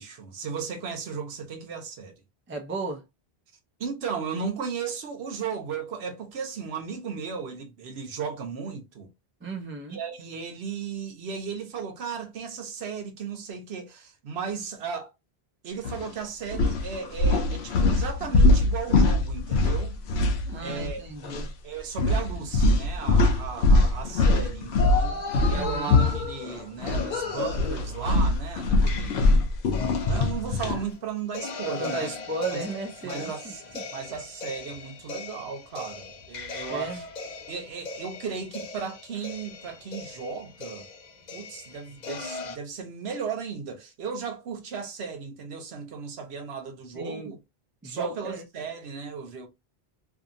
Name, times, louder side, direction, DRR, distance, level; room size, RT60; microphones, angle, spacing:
voice 1, 0.0-2.2 3.8-9.1 9.9-15.1 15.6-20.0 20.6-21.0 21.6-25.2 25.5-29.2 30.0-32.1 32.5-32.6 33.0-33.6 33.9-37.0 37.5-40.9 41.3-47.4 47.8-49.5, right 6 dB, 80° right, 1.0 m, -35 dB
voice 2, 2.5-3.0 9.4-10.0 20.4-21.5 25.5-25.9 31.8-33.5 36.7-37.0 46.9-47.4 47.8-48.4, right 3 dB, 15° right, 0.4 m, -34 dB
sound 1, 15.8-16.1 16.5-21.0 21.2-21.5 22.0-27.1 27.4-30.8, left 2 dB, 85° left, 0.8 m, -23 dB
sound 2, 24.8-28.3 28.9-30.9 31.3-42.6, left 4 dB, 50° left, 0.6 m, -37 dB
2.7 x 2.5 x 2.5 m
omnidirectional pair, 1.1 m